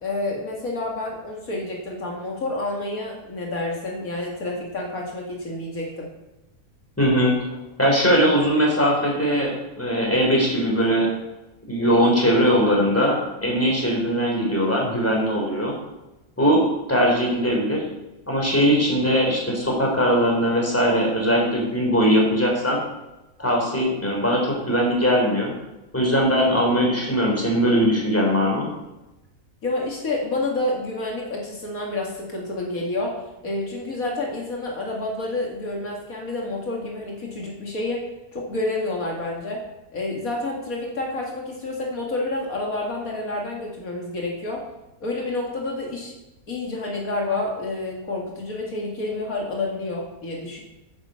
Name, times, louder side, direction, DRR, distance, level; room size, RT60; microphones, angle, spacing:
voice 1, 0.0-6.1 29.6-33.2 33.4-38.1 38.3-39.6 39.9-44.6 45.0-46.1 46.5-50.6, left 2 dB, 70° left, -1 dB, 2.5 m, -29 dB
voice 2, 7.0-7.3 7.8-11.1 11.7-15.8 16.4-17.8 18.3-22.8 23.4-25.5 25.9-28.7, equal, 10° left, -2 dB, 3.7 m, -20 dB
10.0 x 8.2 x 6.9 m, 0.99 s
omnidirectional pair, 1.5 m